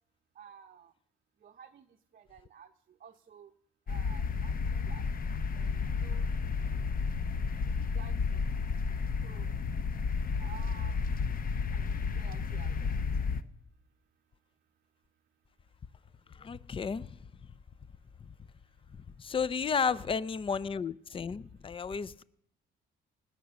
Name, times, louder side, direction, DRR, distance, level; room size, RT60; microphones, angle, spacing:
voice 1, 0.4-0.9 1.4-1.9 2.1-2.7 3.0-3.5 3.9-5.0 5.5-6.2 6.6-6.7 7.7-8.4 9.2-9.5 10.4-11.3 11.7-12.9 19.8-20.0, right 8 dB, 45° right, 4 dB, 0.7 m, -52 dB
sound 1, 3.9-13.4, left 5 dB, 45° left, 0.8 m, -32 dB
voice 2, 16.4-17.1 18.2-18.3 18.9-22.2, left 6 dB, 25° left, 20 dB, 0.5 m, -33 dB
19.5 x 7.5 x 7.0 m, 0.75 s
cardioid pair, 90°, 20 cm